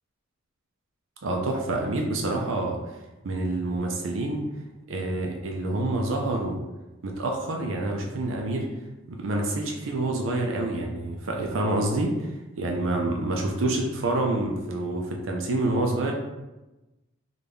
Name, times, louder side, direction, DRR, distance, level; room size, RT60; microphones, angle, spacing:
voice 1, 1.2-2.8 3.2-4.4 4.9-6.6 7.0-8.7 9.1-12.3 12.6-16.1, right 2 dB, 70° right, 1 dB, 0.5 m, -27 dB
3.8 x 2.2 x 3.4 m, 1.0 s
head